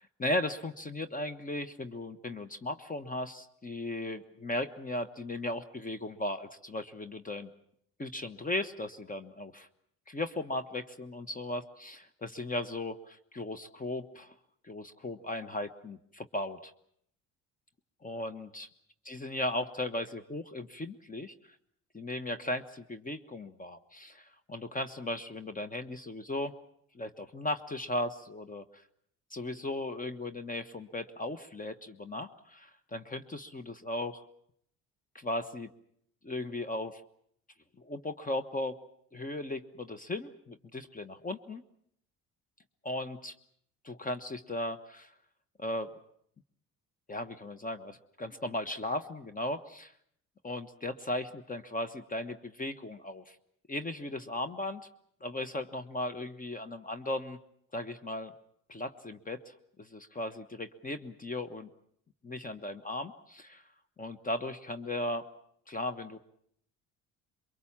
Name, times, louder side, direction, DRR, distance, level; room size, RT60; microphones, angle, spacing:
voice 1, 0.2-7.5 8.0-9.7 10.1-14.3 14.6-16.7 18.0-18.7 19.1-21.3 21.9-26.5 26.9-28.6 29.3-34.2 35.1-35.7 36.2-37.0 37.8-38.8 39.1-41.6 42.8-43.3 43.8-45.1 45.6-45.9 47.1-49.9 50.4-53.4 53.7-54.9 55.2-57.4 57.7-58.3 58.7-61.7 62.2-63.6 64.0-65.3 65.7-66.2, left 1 dB, 20° left, 11 dB, 1.3 m, -37 dB
23.0 x 23.0 x 7.4 m, 0.69 s
supercardioid pair, 75°, 36 cm